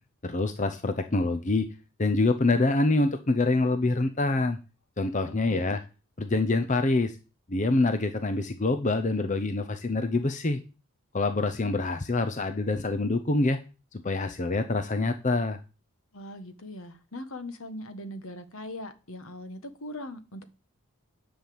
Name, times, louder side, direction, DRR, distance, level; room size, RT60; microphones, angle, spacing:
voice 1, 0.2-1.7 2.0-4.6 5.0-5.8 6.2-7.1 7.5-10.6 11.1-13.6 13.9-15.6, left 2 dB, 35° left, 0.7 m, -26 dB
voice 2, 5.3-5.8 16.1-20.4, left 1 dB, 65° left, 1.4 m, -40 dB
10.5 x 5.7 x 7.8 m
head